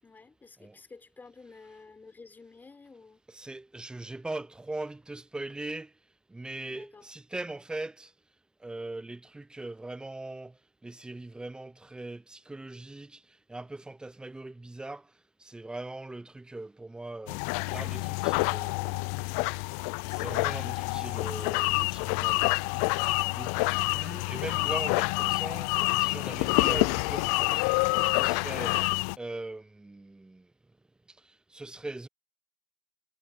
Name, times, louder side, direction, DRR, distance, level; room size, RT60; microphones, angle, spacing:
voice 1, 0.0-3.2 6.7-7.1, left 4 dB, 20° left, 6.0 m, -51 dB
voice 2, 3.3-5.9 6.3-8.1 8.6-10.6 10.8-15.1 15.4-17.4 17.7-19.1 20.1-22.4 23.3-25.7 26.0-27.7 28.1-28.8 29.2-30.5 31.2-32.1, right 2 dB, 10° right, 0.6 m, -40 dB
sound 1, 17.3-29.2, left 31 dB, 65° left, 0.4 m, -27 dB
hypercardioid pair, 85°, 10 cm